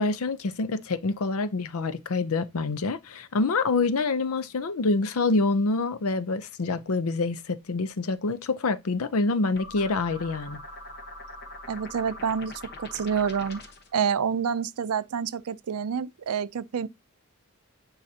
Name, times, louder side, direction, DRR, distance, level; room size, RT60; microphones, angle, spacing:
voice 1, 0.0-10.6, left 3 dB, 80° left, 0.6 m, -26 dB
sound 1, 9.5-13.9, left 2 dB, 45° left, 1.1 m, -42 dB
voice 2, 11.7-13.6 13.9-16.9, right 7 dB, 90° right, 0.5 m, -28 dB
9.8 x 4.0 x 2.8 m
head